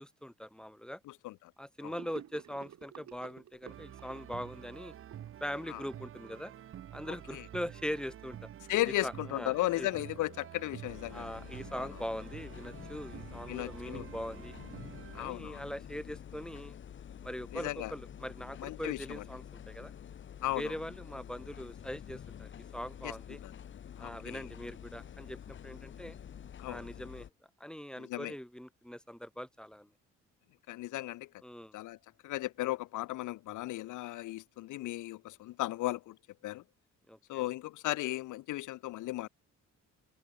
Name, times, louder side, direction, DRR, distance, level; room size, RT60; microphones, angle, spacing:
voice 1, 0.0-1.0 1.6-4.9 5.4-6.5 6.9-8.5 9.0-9.9 11.1-14.6 15.1-16.8 17.2-19.9 20.5-23.4 24.0-26.2 26.6-27.3 27.6-29.9 31.4-31.8 37.1-37.4, equal, 5° left, 2.1 m, -41 dB
voice 2, 1.1-1.5 1.8-1.9 5.7-5.8 7.1-7.5 8.7-11.3 11.8-11.9 13.5-14.1 15.1-15.6 17.5-17.9 18.6-19.2 20.4-20.7 23.0-23.5 24.0-24.5 26.6-26.9 28.0-28.3 30.7-31.3 31.7-32.0 32.2-36.2 36.4-36.6 37.3-39.3, left 17 dB, 80° left, 0.7 m, -36 dB
Gurgling / Sink (filling or washing), 1.9-6.4, right 10 dB, 65° right, 3.1 m, -53 dB
sound 1, 3.7-15.3, right 11 dB, 45° right, 0.6 m, -49 dB
sound 2, 10.9-27.3, left 9 dB, 40° left, 0.7 m, -48 dB
cardioid pair, 90°, 30 cm